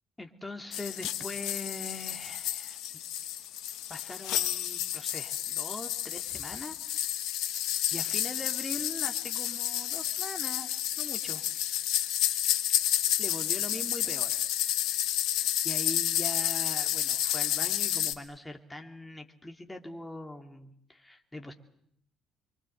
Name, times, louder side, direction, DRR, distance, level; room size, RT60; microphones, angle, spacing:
voice 1, 0.2-2.8 3.9-7.2 7.9-11.5 12.0-12.2 13.2-14.4 15.6-21.5, left 2 dB, 15° left, 4 dB, 2.9 m, -42 dB
sound 1, 0.7-18.1, left 12 dB, 70° left, 1.5 m, -30 dB
25.5 x 24.5 x 8.0 m, 0.67 s
hypercardioid pair, 50°, 0 cm